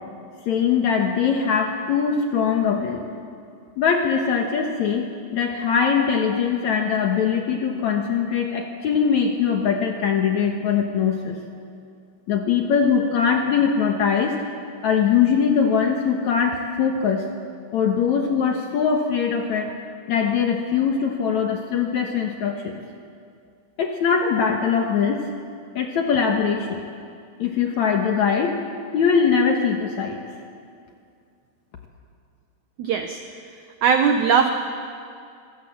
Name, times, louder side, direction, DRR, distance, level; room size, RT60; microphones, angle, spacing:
voice 1, 0.5-3.0 3.8-11.4 12.3-14.4 14.8-17.3 17.7-19.7 20.1-22.8 23.8-25.2 25.7-26.8 27.4-28.6 28.9-30.2, left 6 dB, 65° left, 3 dB, 2.0 m, -21 dB
voice 2, 32.8-33.2 33.8-34.6, right 6 dB, 85° right, 6 dB, 1.6 m, -19 dB
26.0 x 17.0 x 7.3 m, 2.4 s
omnidirectional pair, 4.8 m